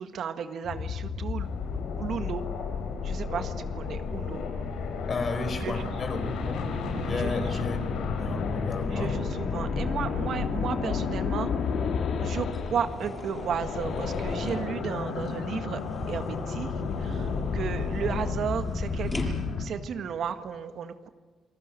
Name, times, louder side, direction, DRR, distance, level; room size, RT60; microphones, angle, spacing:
voice 1, 0.0-1.5 2.0-2.4 3.0-4.4 5.5-5.9 6.9-7.7 8.9-11.5 12.2-19.1 19.6-21.1, right 7 dB, 65° right, 8 dB, 1.7 m, -34 dB
sound 1, 0.6-13.1 13.3-19.7, left 5 dB, 65° left, 2.7 m, -32 dB
sound 2, 1.4-18.4, left 5 dB, 85° left, 3.9 m, -37 dB
voice 2, 5.1-6.7 7.0-7.8 8.2-9.2, left 3 dB, 40° left, 8 dB, 5.0 m, -33 dB
sound 3, 11.4-19.8, left 1 dB, 10° left, 7.0 m, -41 dB
28.0 x 19.0 x 9.0 m, 1.4 s
cardioid pair, 90°, 0 cm